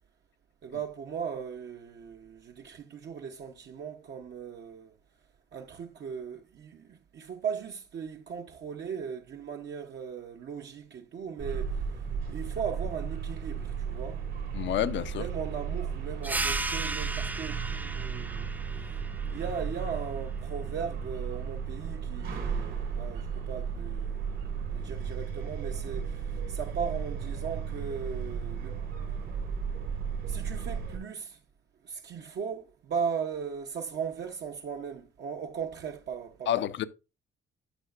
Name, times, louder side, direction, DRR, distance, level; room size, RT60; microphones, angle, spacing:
voice 1, 0.6-4.9 5.5-11.8 12.3-14.2 15.2-18.5 19.3-28.8 30.3-31.4 31.8-36.6, right 6 dB, 60° right, 0.8 m, -38 dB
sound 1, 11.4-31.0, right 6 dB, 85° right, 3.1 m, -34 dB
voice 2, 14.5-15.2 36.5-36.8, left 11 dB, 65° left, 0.6 m, -29 dB
sound 2, 16.2-21.4, right 2 dB, 10° right, 0.3 m, -37 dB
12.0 x 5.7 x 2.4 m
cardioid pair, 90°, 20 cm